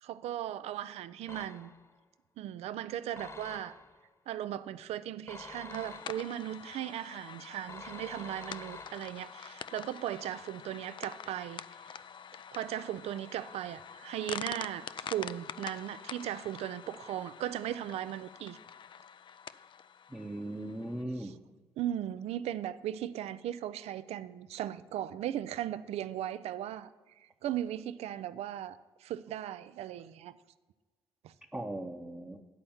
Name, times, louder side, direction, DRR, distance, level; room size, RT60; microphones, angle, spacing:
voice 1, 0.0-1.7 2.4-3.8 4.3-12.0 12.5-18.6 21.2-21.3 21.8-26.9 27.2-30.4 31.2-31.3, right 11 dB, 70° right, 15 dB, 0.4 m, -37 dB
sound 1, 1.3-2.0 3.2-4.1 5.3-6.5 7.7-9.3, left 3 dB, 25° left, 1.1 m, -48 dB
sound 2, 5.7-21.0, left 8 dB, 45° left, 0.3 m, -46 dB
voice 2, 20.1-21.3 31.5-32.4, right 1 dB, 10° right, -1 dB, 0.8 m, -38 dB
10.5 x 4.3 x 7.1 m, 1.3 s
hypercardioid pair, 45°, 11 cm